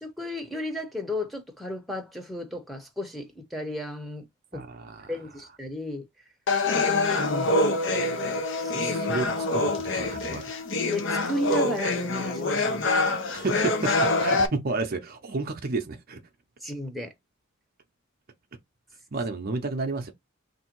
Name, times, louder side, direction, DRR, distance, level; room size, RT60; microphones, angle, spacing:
voice 1, 0.0-4.2 4.5-4.6 5.1-6.1 7.2-7.6 8.6-9.2 10.9-13.0 16.6-17.1, left 1 dB, ahead, 0.9 m, -34 dB
voice 2, 4.5-5.1 8.8-10.5 13.3-16.2 19.1-20.1, right 3 dB, 45° right, 0.6 m, -31 dB
sound 1, 6.5-14.5, left 2 dB, 60° left, 0.7 m, -25 dB
3.4 x 2.6 x 4.5 m
head